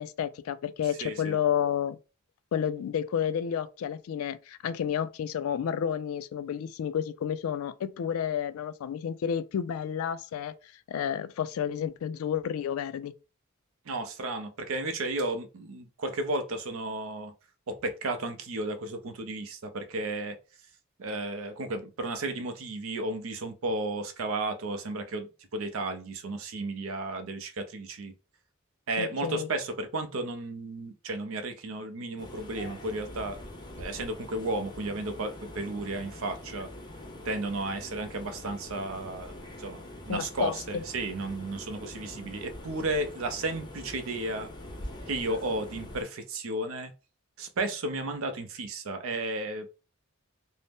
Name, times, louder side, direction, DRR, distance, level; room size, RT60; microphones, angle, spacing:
voice 1, 0.0-2.0 2.5-10.5 10.9-13.1 29.0-29.5 40.1-40.8, left 8 dB, 80° left, 0.3 m, -31 dB
voice 2, 1.0-1.4 13.9-17.3 17.7-20.4 21.0-28.1 28.9-33.4 33.8-36.7 37.2-39.8 40.1-44.5 45.1-46.9 47.4-49.7, right 2 dB, 70° right, 0.5 m, -33 dB
sound 1, 32.2-46.0, left 1 dB, 20° left, 0.5 m, -44 dB
2.6 x 2.0 x 3.4 m
head